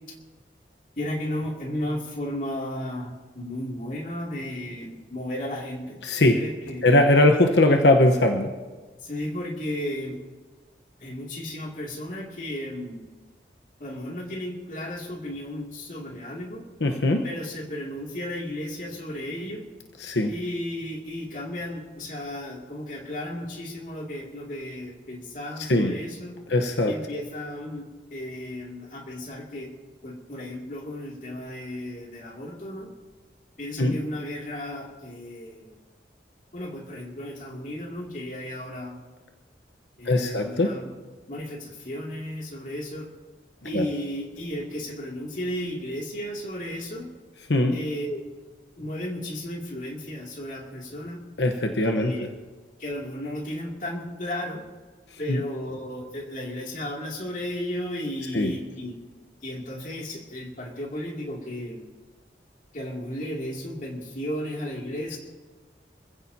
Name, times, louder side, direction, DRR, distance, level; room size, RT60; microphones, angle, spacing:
voice 1, 1.0-6.9 9.0-10.2 11.0-13.1 13.8-16.7 17.2-19.7 20.3-26.4 26.9-29.7 30.0-32.9 33.6-35.8 36.5-39.0 40.0-40.9 41.3-43.1 43.6-47.1 47.7-48.2 48.8-51.2 51.9-52.3 52.8-54.7 55.2-59.0 59.4-61.9 62.7-65.2, left 1 dB, 45° left, -1 dB, 2.6 m, -34 dB
voice 2, 6.0-6.4 6.8-8.5 16.8-17.3 20.0-20.3 25.7-25.9 26.5-26.9 33.8-34.0 40.1-40.7 43.7-43.8 47.5-47.8 51.4-52.1 55.3-55.4 58.3-58.5, left 1 dB, 90° left, 4 dB, 1.1 m, -20 dB
26.5 x 15.5 x 2.8 m, 1.4 s
head